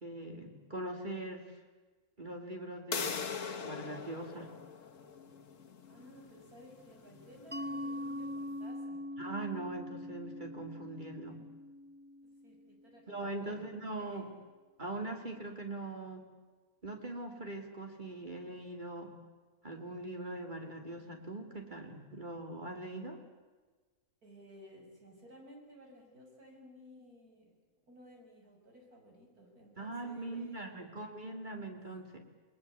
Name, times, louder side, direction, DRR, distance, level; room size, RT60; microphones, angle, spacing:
voice 1, 0.0-1.6 2.2-3.3 3.6-4.5 9.2-11.4 13.1-14.2 14.8-16.3 16.8-19.1 19.6-23.2 29.8-32.2, right 2 dB, 30° right, 3 dB, 2.7 m, -41 dB
sound 1, 2.9-8.5, left 6 dB, 60° left, 1.7 m, -42 dB
voice 2, 5.9-9.0 12.4-13.7 14.0-14.4 24.2-27.5 27.9-30.8, equal, 85° right, 1 dB, 6.7 m, -56 dB
Mallet percussion, 7.5-12.9, left 1 dB, 10° right, 0.5 m, -42 dB
28.0 x 20.0 x 8.3 m, 1.3 s
omnidirectional pair, 1.5 m